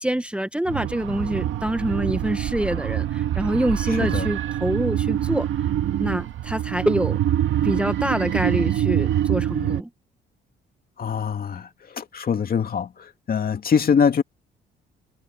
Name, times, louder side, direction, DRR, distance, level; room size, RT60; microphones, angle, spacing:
voice 1, 0.0-5.5 6.0-7.2 7.6-9.9, right 1 dB, 5° right, 1.2 m, -25 dB
sound 1, 0.7-9.8, right 11 dB, 75° right, 2.1 m, -25 dB
voice 2, 11.0-11.6 12.0-12.9 13.3-14.2, left 6 dB, 50° left, 2.5 m, -22 dB
cardioid pair, 90°, 20 cm